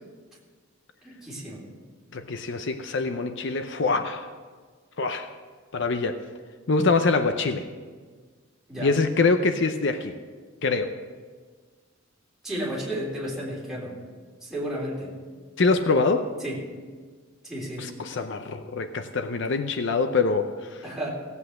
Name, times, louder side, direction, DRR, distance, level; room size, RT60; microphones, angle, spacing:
voice 1, 1.0-1.6 8.7-8.9 12.4-14.0 14.4-15.1 16.4-16.6 17.4-17.9 20.8-21.1, right 1 dB, ahead, -6 dB, 3.6 m, -32 dB
voice 2, 2.1-4.3 5.0-5.3 5.7-6.2 6.7-7.7 8.8-10.1 10.6-10.9 15.6-16.3 17.8-20.8, left 3 dB, 60° left, 8 dB, 0.7 m, -24 dB
16.5 x 8.3 x 6.5 m, 1.5 s
head